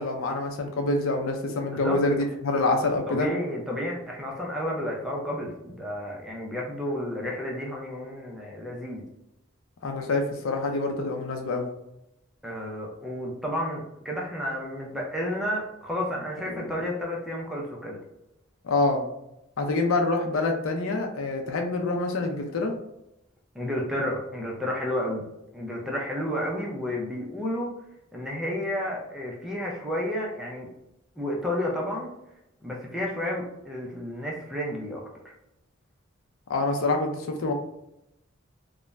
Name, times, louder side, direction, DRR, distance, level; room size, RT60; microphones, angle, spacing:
voice 1, 0.0-3.3 9.8-11.7 18.6-19.0 19.6-22.7 36.5-37.5, left 2 dB, 85° left, 4 dB, 0.5 m, -26 dB
voice 2, 1.6-2.0 3.0-9.0 12.4-18.0 23.5-25.2 25.5-27.7 28.1-30.7 31.2-32.1 32.6-35.3, left 1 dB, ahead, -2 dB, 0.5 m, -31 dB
2.4 x 2.1 x 3.1 m, 0.84 s
head